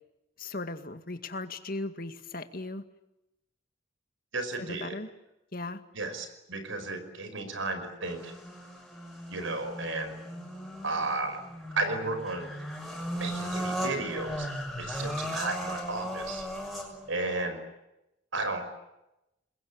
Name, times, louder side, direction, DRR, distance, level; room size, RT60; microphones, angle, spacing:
voice 1, 0.4-2.8 4.6-5.1 5.5-5.8, left 2 dB, 50° left, 9 dB, 2.1 m, -37 dB
voice 2, 4.3-5.0 5.9-8.3 9.3-10.2 10.8-11.4 11.8-12.5 13.2-16.4 17.1-17.6 18.3-18.6, right 3 dB, 90° right, 9 dB, 5.5 m, -33 dB
sound 1, 8.0-17.1, equal, ahead, 6.2 m, -37 dB
27.5 x 21.5 x 9.8 m, 0.91 s
head